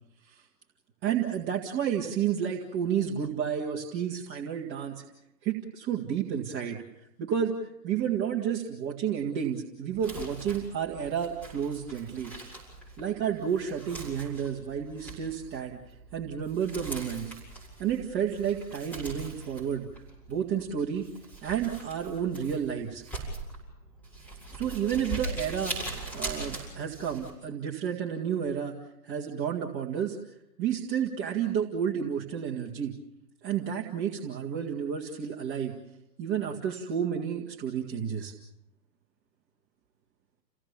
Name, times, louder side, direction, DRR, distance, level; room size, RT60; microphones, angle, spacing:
voice 1, 1.0-5.0 5.4-6.8 7.2-12.3 13.0-15.8 16.1-17.3 17.8-19.9 20.3-21.1 21.4-23.0 24.5-28.8 29.0-30.2 30.6-32.9 33.4-35.7 36.2-38.3, right 8 dB, 25° right, -2 dB, 2.1 m, -31 dB
Crumpling crinkling, 9.9-27.3, right 2 dB, 5° left, 7.3 m, -41 dB
29.5 x 17.5 x 7.1 m, 0.86 s
hypercardioid pair, 135°, 50 cm